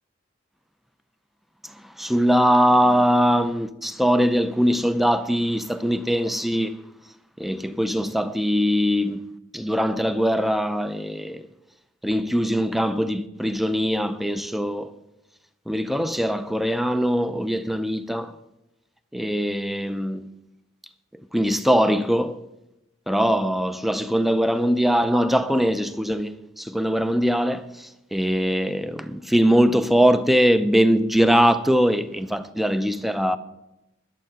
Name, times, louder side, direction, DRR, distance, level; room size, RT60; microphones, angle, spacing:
voice 1, 2.0-6.8 7.4-9.2 9.5-11.5 12.0-14.9 15.7-18.3 19.1-20.2 21.3-22.4 23.1-33.4, equal, ahead, 0.5 m, -21 dB
11.5 x 7.5 x 7.5 m
head